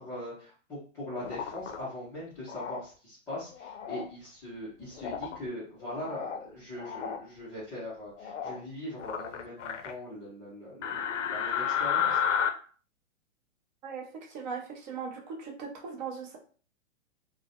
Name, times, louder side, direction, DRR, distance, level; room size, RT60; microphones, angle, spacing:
voice 1, 0.0-12.2, left 1 dB, 10° left, -11 dB, 0.3 m, -41 dB
sound 1, 1.2-1.8 2.5-2.8 3.5-4.1 5.0-5.4 5.8-6.4 6.8-7.2 8.2-8.6 9.0-9.9 10.8-12.5, left 8 dB, 75° left, 0.5 m, -32 dB
voice 2, 13.8-16.4, right 5 dB, 35° right, 1 dB, 0.6 m, -39 dB
2.3 x 2.0 x 2.7 m, 0.41 s
hypercardioid pair, 120°, 37 cm